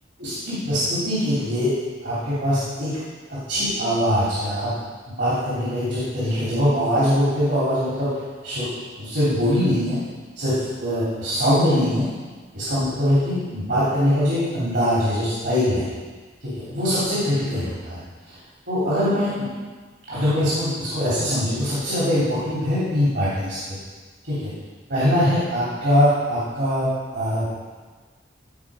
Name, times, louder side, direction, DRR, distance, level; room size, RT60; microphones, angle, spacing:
voice 1, 0.2-1.7 2.0-2.9 3.5-4.7 5.2-8.1 8.4-8.7 9.0-10.0 10.4-12.0 12.5-15.8 16.4-18.0 18.7-19.5 20.1-23.8 24.2-24.5 24.9-27.5, equal, 70° right, -10 dB, 3.3 m, -22 dB
14.5 x 5.1 x 5.1 m, 1.4 s
head